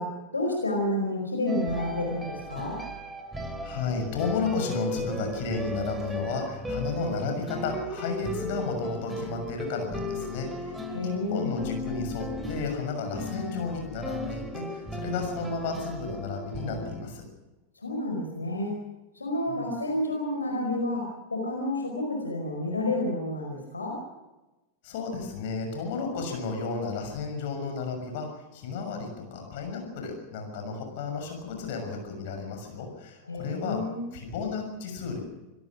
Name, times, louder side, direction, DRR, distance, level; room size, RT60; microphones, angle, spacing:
voice 1, 0.0-2.8 10.9-11.5 17.7-18.7 19.1-24.0 33.3-34.0, left 1 dB, 80° left, 2 dB, 4.9 m, -30 dB
sound 1, 1.5-17.0, equal, 5° right, 2.9 m, -36 dB
voice 2, 3.6-17.2 19.5-19.7 24.8-33.8 34.1-35.2, left 4 dB, 50° left, 4 dB, 6.7 m, -33 dB
26.5 x 18.0 x 6.2 m, 1.1 s
figure-of-eight pair, 90°, 0 cm